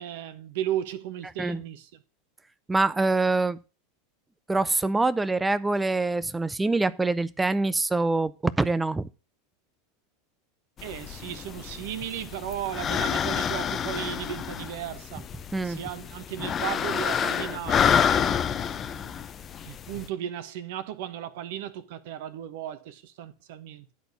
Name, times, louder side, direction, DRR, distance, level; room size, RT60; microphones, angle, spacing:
voice 1, 0.0-1.9 10.8-15.2 15.6-19.3 19.6-23.9, right 11 dB, 65° right, 1.0 m, -35 dB
voice 2, 2.7-3.6 4.5-9.1 15.5-15.8, right 3 dB, 10° right, 0.5 m, -25 dB
sound 1, 10.8-20.1, left 8 dB, 30° left, 0.7 m, -28 dB
10.5 x 4.3 x 6.9 m
hypercardioid pair, 90°, 0 cm